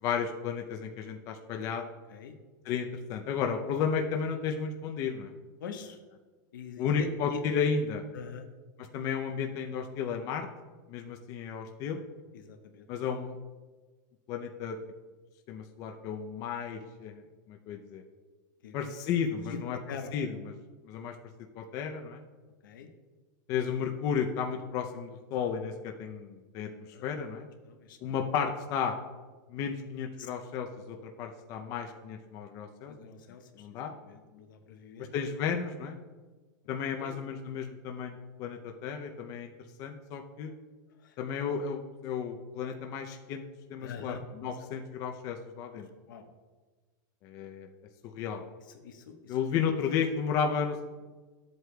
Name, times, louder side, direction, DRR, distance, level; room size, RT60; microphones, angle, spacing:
voice 1, 0.0-1.9 2.7-5.3 6.8-8.0 8.9-10.5 10.9-12.0 12.9-13.3 14.3-14.8 15.5-17.1 17.5-18.0 18.7-19.8 20.1-20.3 20.8-21.1 21.6-22.2 23.5-26.7 27.0-27.5 28.0-29.0 29.5-32.9 33.6-33.9 35.1-36.0 36.7-39.5 39.8-40.5 41.2-43.4 43.7-45.9 47.2-47.7 48.0-48.4 49.3-50.8, left 6 dB, 30° left, 4 dB, 0.6 m, -33 dB
voice 2, 5.6-6.0 6.5-7.4 8.1-8.5 12.3-13.1 18.6-18.8 19.5-19.6 19.9-20.3 22.6-22.9 26.9-27.2 27.6-28.2 30.2-30.3 32.9-33.7 34.0-35.1 36.9-37.1 41.0-41.2 43.8-44.2 44.5-44.6 45.7-45.8 46.1-46.3 48.6-49.4, left 6 dB, 85° left, 5 dB, 1.2 m, -43 dB
13.0 x 7.9 x 2.3 m, 1.3 s
supercardioid pair, 165°, 11 cm